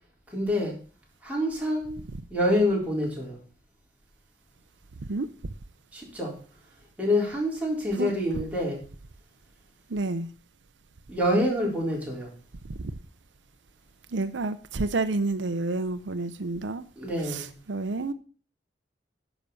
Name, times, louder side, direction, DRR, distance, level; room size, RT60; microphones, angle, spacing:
voice 1, 0.3-0.7 1.2-1.9 2.3-3.4 5.9-6.3 7.0-8.8 11.1-12.3 17.0-17.6, left 1 dB, 10° right, -3 dB, 4.0 m, -26 dB
voice 2, 9.9-10.3 14.1-16.9 17.3-18.1, right 3 dB, 85° right, 12 dB, 0.7 m, -29 dB
10.5 x 6.0 x 6.9 m, 0.40 s
head